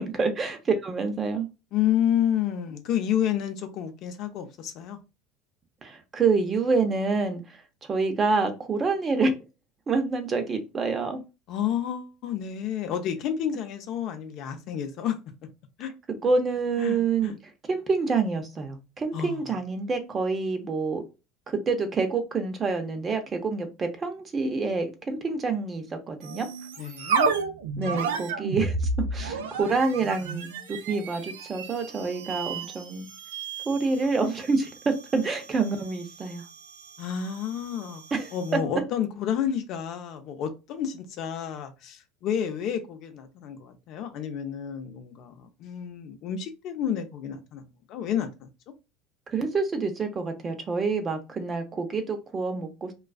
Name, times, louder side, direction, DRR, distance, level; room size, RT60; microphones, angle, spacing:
voice 1, 0.0-1.5 5.8-7.4 7.9-9.3 9.9-11.2 16.2-17.3 17.7-21.0 21.5-26.5 27.8-30.5 30.8-33.1 33.7-36.4 38.1-38.3 49.3-52.9, right 4 dB, 30° right, 0.6 m, -27 dB
voice 2, 1.7-5.0 11.5-15.2 15.8-15.9 16.8-17.4 19.1-19.4 26.8-27.3 37.0-38.0 38.3-48.5, left 9 dB, 60° left, 0.5 m, -30 dB
sound 1, 26.2-38.7, right 4 dB, 85° right, 0.4 m, -33 dB
2.3 x 2.3 x 2.3 m
hypercardioid pair, 90°, 0 cm